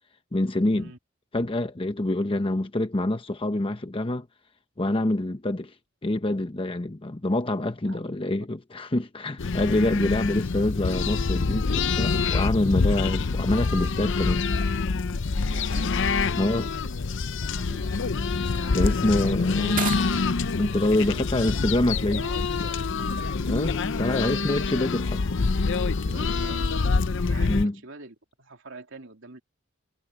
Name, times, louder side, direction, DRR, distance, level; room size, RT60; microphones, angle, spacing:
voice 1, 0.3-0.9 1.3-4.3 4.8-5.7 6.0-14.5 16.4-16.7 18.7-19.8 20.6-22.2 23.5-25.2 27.5-27.7, left 1 dB, 25° left, 0.9 m, -26 dB
voice 2, 7.8-8.3 15.4-15.9 17.4-18.1 18.6-19.3 21.0-22.4 26.0-26.9 27.2-29.4, right 3 dB, 65° right, 3.2 m, -45 dB
sound 1, 9.4-27.7, left 4 dB, 65° left, 0.6 m, -26 dB
sound 2, 16.5-24.6, right 7 dB, 40° right, 1.9 m, -43 dB
head